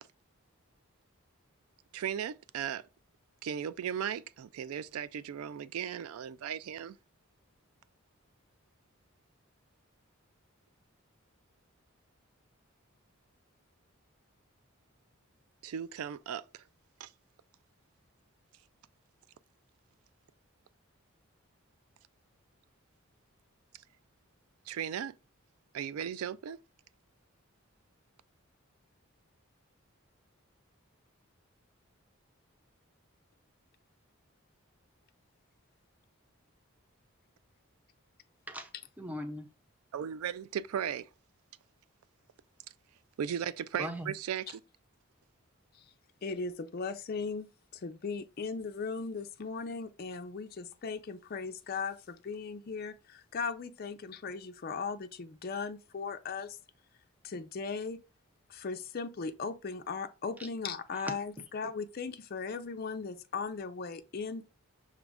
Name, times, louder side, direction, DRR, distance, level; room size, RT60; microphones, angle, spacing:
voice 1, 1.9-2.8 3.4-7.0 15.6-16.6 17.0-17.1 24.7-25.2 25.7-26.6 39.9-41.1 43.2-44.6, right 8 dB, 90° right, 0.3 m, -36 dB
voice 2, 38.5-39.5 43.8-44.1 60.4-60.5 60.9-61.5, equal, 5° right, 0.5 m, -40 dB
voice 3, 46.2-56.6 57.2-58.0 58.5-64.4, left 4 dB, 45° left, 0.4 m, -38 dB
6.1 x 2.5 x 3.4 m
head